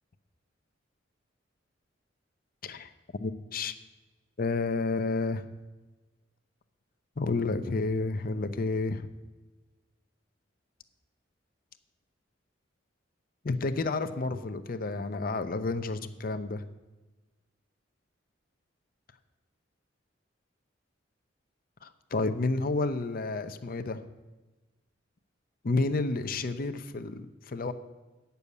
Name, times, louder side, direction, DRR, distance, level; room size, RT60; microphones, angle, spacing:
voice 1, 3.2-3.7 4.4-5.4 7.2-9.1 13.4-16.6 21.8-24.0 25.6-27.7, left 3 dB, 50° left, 10 dB, 0.6 m, -30 dB
9.1 x 6.9 x 8.3 m, 1.2 s
head